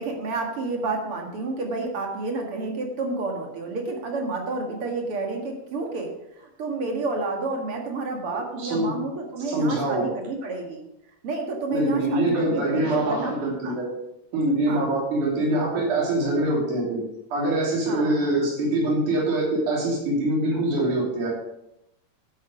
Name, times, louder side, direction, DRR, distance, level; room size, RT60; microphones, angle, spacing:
voice 1, 0.0-10.8 11.2-13.4 13.6-13.8 14.7-15.0 17.9-18.4, right 3 dB, 50° right, 2 dB, 2.4 m, -30 dB
voice 2, 8.6-8.9 9.5-10.1 11.7-13.9 14.3-17.0 17.3-21.3, right 1 dB, 70° right, -4 dB, 4.4 m, -24 dB
11.5 x 8.5 x 5.0 m, 0.85 s
omnidirectional pair, 3.7 m